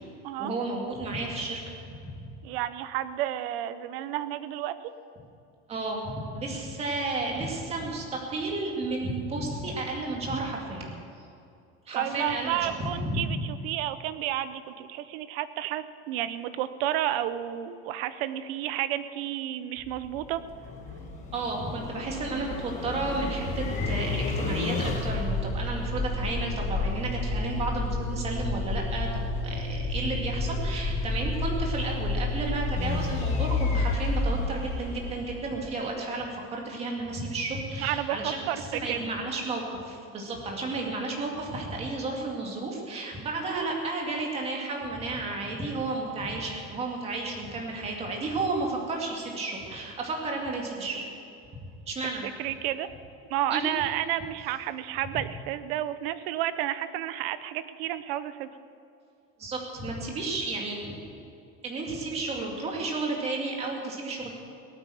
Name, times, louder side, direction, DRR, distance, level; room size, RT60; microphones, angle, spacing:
voice 1, 0.4-1.8 2.1-2.3 5.7-10.9 11.9-13.4 21.3-51.0 51.9-52.3 53.5-53.7 59.4-61.1 61.6-64.3, right 2 dB, 20° right, 0 dB, 2.2 m, -32 dB
voice 2, 2.4-4.8 11.9-20.4 32.4-32.6 37.8-39.0 52.4-52.9 53.3-58.5, right 12 dB, 70° right, 13 dB, 0.8 m, -31 dB
sound 1, 19.8-35.8, left 2 dB, 25° left, 1.5 m, -30 dB
18.0 x 9.1 x 7.7 m, 2.5 s
cardioid pair, 180°, 30 cm